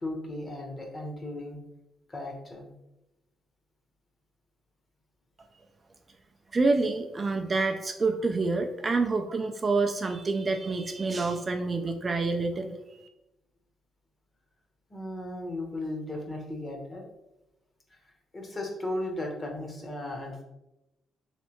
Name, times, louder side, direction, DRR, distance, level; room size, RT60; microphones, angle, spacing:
voice 1, 0.0-1.6 2.1-2.7 14.9-17.0 18.3-20.4, left 1 dB, 30° left, 1 dB, 0.9 m, -36 dB
voice 2, 6.5-13.1, right 3 dB, 30° right, 4 dB, 0.3 m, -27 dB
3.2 x 3.2 x 3.0 m, 0.92 s
cardioid pair, 90°, 0 cm